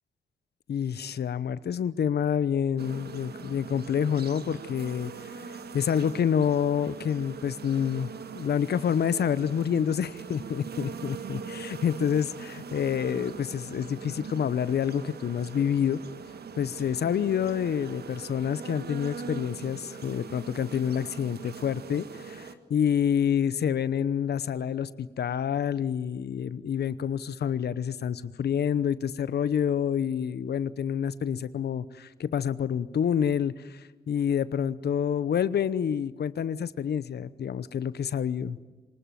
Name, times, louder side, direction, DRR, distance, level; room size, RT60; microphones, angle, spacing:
voice 1, 0.7-5.1 5.7-16.0 16.6-38.6, left 8 dB, 65° left, 17 dB, 0.9 m, -28 dB
sound 1, 2.8-22.5, right 5 dB, 65° right, 1.6 m, -41 dB
24.0 x 19.5 x 9.2 m, 1.2 s
supercardioid pair, 45°, 18 cm